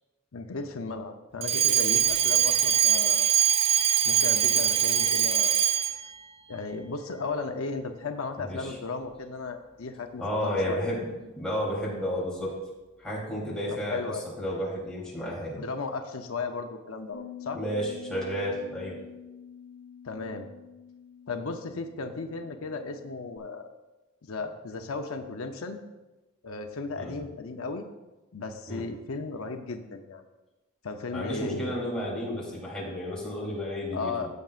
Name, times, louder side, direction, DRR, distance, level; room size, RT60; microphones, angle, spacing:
voice 1, 0.3-3.3 4.0-5.6 6.0-6.1 6.5-10.8 13.7-14.2 15.6-17.6 20.0-20.5 21.3-23.7 24.2-25.8 26.4-27.9 28.3-30.2 30.8-31.8 33.9-34.3, left 4 dB, 90° left, 6 dB, 0.7 m, -35 dB
Alarm, 1.4-6.1, right 9 dB, 30° right, 0.4 m, -23 dB
voice 2, 8.4-8.7 10.2-12.6 13.0-15.6 17.5-19.0 27.0-27.2 28.7-28.8 31.1-34.2, equal, 5° left, -6 dB, 3.3 m, -32 dB
Bass guitar, 17.1-23.4, left 7 dB, 70° left, 1.1 m, -47 dB
14.5 x 7.6 x 2.5 m, 1.1 s
head